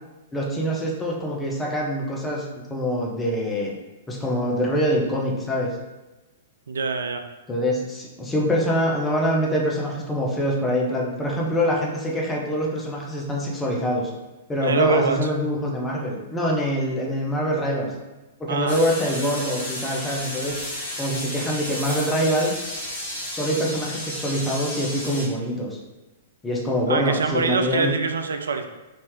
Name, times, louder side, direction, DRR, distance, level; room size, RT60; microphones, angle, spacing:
voice 1, 0.3-3.8 4.1-5.7 7.5-14.1 14.5-17.9 18.4-20.6 21.0-22.6 23.3-25.8 26.4-27.9, equal, 10° left, -2 dB, 0.6 m, -24 dB
voice 2, 6.7-7.2 14.6-15.2 18.5-18.8 26.9-28.7, right 4 dB, 65° right, 7 dB, 0.3 m, -24 dB
sound 1, 18.7-25.3, left 1 dB, 60° left, 0.9 m, -32 dB
3.5 x 2.7 x 3.0 m, 1.1 s
figure-of-eight pair, 110°, 0 cm